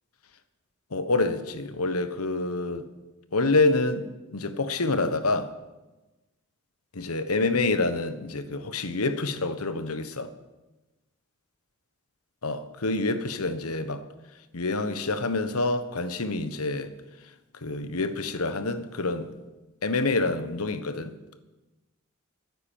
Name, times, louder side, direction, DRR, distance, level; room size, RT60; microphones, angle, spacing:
voice 1, 0.9-2.9 3.3-5.5 6.9-10.3 12.4-14.0 14.5-16.9 17.6-19.3 19.8-21.1, left 3 dB, 90° left, 1.2 m, -27 dB
13.0 x 9.8 x 9.2 m
head